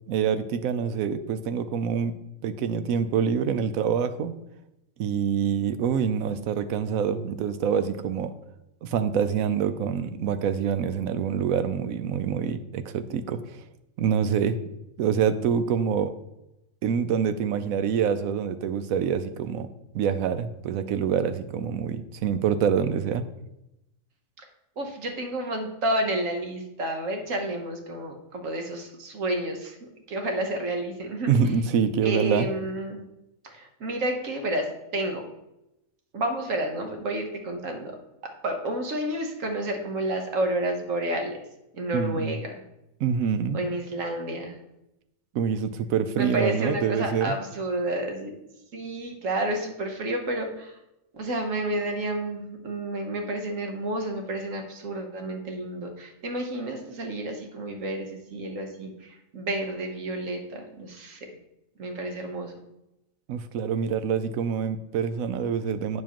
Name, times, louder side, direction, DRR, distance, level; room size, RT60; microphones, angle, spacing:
voice 1, 0.1-2.2 2.4-4.4 5.0-8.3 8.8-13.4 14.0-14.6 15.0-16.1 16.8-19.7 19.9-23.3 31.3-32.5 41.9-42.4 43.0-43.6 45.3-47.3 63.3-66.0, right 7 dB, 90° right, 11 dB, 1.0 m, -26 dB
voice 2, 24.8-31.3 32.0-33.0 33.4-35.3 36.1-37.9 38.2-41.4 41.7-42.6 43.5-44.6 46.2-48.3 48.7-50.8 51.1-61.3 61.8-62.6, right 1 dB, 70° right, 4 dB, 1.4 m, -30 dB
8.5 x 7.1 x 3.0 m, 0.88 s
omnidirectional pair, 1.4 m